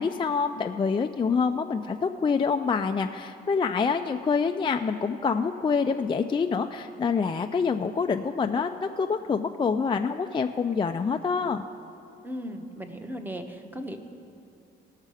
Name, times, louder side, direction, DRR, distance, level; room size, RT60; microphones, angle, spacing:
voice 1, 0.0-11.6, left 5 dB, 25° left, 5 dB, 0.4 m, -26 dB
voice 2, 12.2-14.0, equal, 10° right, 6 dB, 1.0 m, -36 dB
18.5 x 6.6 x 4.9 m, 2.6 s
cardioid pair, 90°, 20 cm